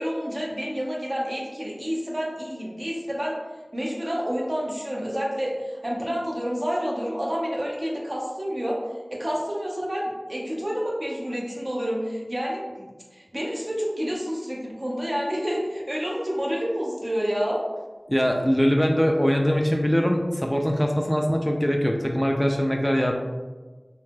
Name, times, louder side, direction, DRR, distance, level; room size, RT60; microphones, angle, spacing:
voice 1, 0.0-3.4 3.7-8.8 9.1-17.6, equal, 45° right, -3 dB, 0.7 m, -29 dB
voice 2, 18.1-23.1, equal, 15° left, 2 dB, 0.3 m, -22 dB
3.1 x 2.9 x 2.2 m, 1.3 s
wide cardioid pair, 40°, 0 cm